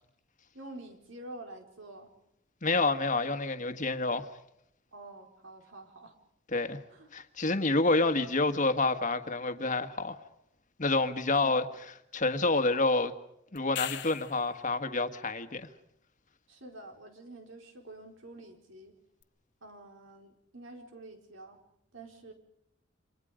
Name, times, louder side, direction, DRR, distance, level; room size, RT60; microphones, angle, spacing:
voice 1, 0.5-2.1 4.9-6.1 6.9-7.1 11.4-11.7 16.5-18.9 19.6-21.6 21.9-22.3, right 2 dB, 80° right, 4.7 m, -48 dB
voice 2, 2.6-4.3 6.5-6.8 7.1-10.2 10.8-13.1 13.5-15.7, left 3 dB, 40° left, 1.7 m, -28 dB
sound 1, 13.6-14.5 19.2-19.3, left 12 dB, 65° left, 1.3 m, -38 dB
29.0 x 26.0 x 5.1 m
head